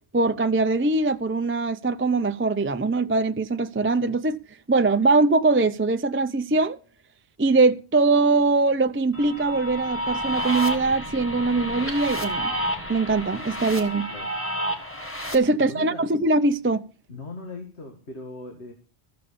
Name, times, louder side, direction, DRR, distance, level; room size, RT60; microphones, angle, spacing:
voice 1, 0.1-4.4 4.7-6.8 7.4-12.5 12.9-14.1 15.3-16.8, right 3 dB, 15° right, 0.4 m, -22 dB
sound 1, 9.1-15.3, equal, 10° left, 1.8 m, -30 dB
voice 2, 15.4-16.1 17.1-18.7, left 2 dB, 75° left, 2.5 m, -39 dB
14.5 x 7.0 x 6.9 m
omnidirectional pair, 1.1 m